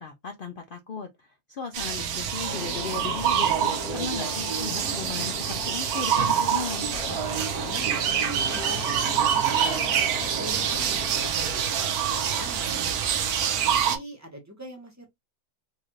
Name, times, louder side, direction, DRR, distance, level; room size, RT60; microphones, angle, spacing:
voice 1, 0.0-6.9, left 5 dB, 70° left, 0.5 m, -36 dB
sound 1, 1.7-14.0, right 8 dB, 80° right, 1.2 m, -26 dB
sound 2, 2.5-11.3, left 6 dB, 85° left, 1.4 m, -40 dB
voice 2, 7.6-8.1 8.5-11.9 12.1-13.2 13.9-15.1, right 1 dB, 15° right, 0.9 m, -43 dB
4.0 x 2.5 x 3.0 m
omnidirectional pair, 1.6 m